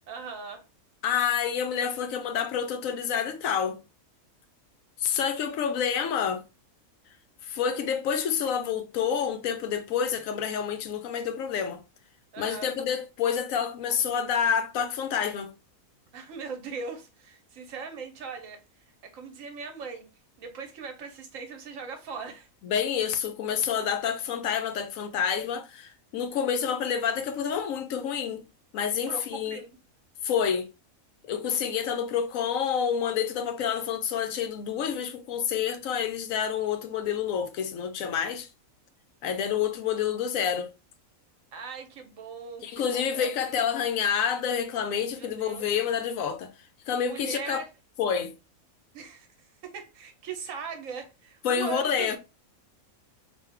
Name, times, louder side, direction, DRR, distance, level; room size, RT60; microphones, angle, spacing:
voice 1, 0.1-0.6 12.3-12.7 16.1-18.6 18.9-20.1 20.4-22.5 29.1-29.8 31.4-31.5 41.5-43.6 45.1-45.6 47.0-47.7 48.9-49.3 49.6-52.2, right 5 dB, 65° right, 1.1 m, -39 dB
voice 2, 1.0-3.8 5.0-6.4 7.4-11.8 12.4-15.5 22.6-28.4 28.7-29.6 30.2-30.7 31.2-38.5 39.2-40.7 42.6-46.5 46.9-47.6 48.0-48.3 51.4-52.2, left 7 dB, 75° left, 0.9 m, -28 dB
3.3 x 2.6 x 3.4 m
omnidirectional pair, 1.5 m